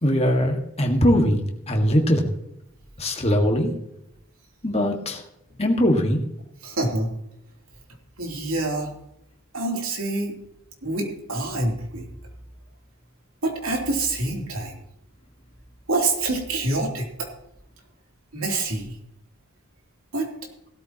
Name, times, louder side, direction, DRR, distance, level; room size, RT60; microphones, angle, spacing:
voice 1, 0.0-2.3 3.0-3.7 4.6-5.2 5.6-6.2, equal, 30° left, 3 dB, 1.7 m, -21 dB
voice 2, 6.6-7.1 8.2-8.9 9.5-10.3 10.8-12.1 13.4-14.8 15.9-17.3 18.3-19.0 20.1-20.3, right 2 dB, 70° right, 0 dB, 3.1 m, -26 dB
17.5 x 13.0 x 2.9 m, 0.80 s
head